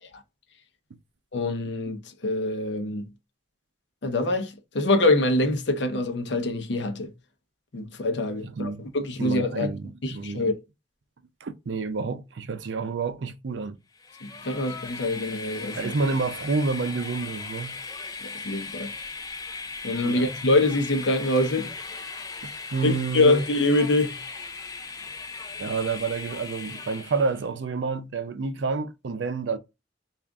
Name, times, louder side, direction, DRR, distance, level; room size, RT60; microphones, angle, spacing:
voice 1, 1.3-3.0 4.0-7.1 7.7-9.7 10.0-10.6 14.2-15.8 18.2-18.9 19.8-21.7 22.8-24.2, left 2 dB, 70° left, 0.7 m, -25 dB
voice 2, 8.4-8.9 9.2-10.4 11.4-13.8 15.7-17.8 20.0-20.3 22.7-23.4 25.6-29.6, right 4 dB, 75° right, 0.5 m, -29 dB
Train, 14.0-27.4, left 4 dB, 20° left, 0.4 m, -38 dB
3.5 x 2.4 x 3.5 m
head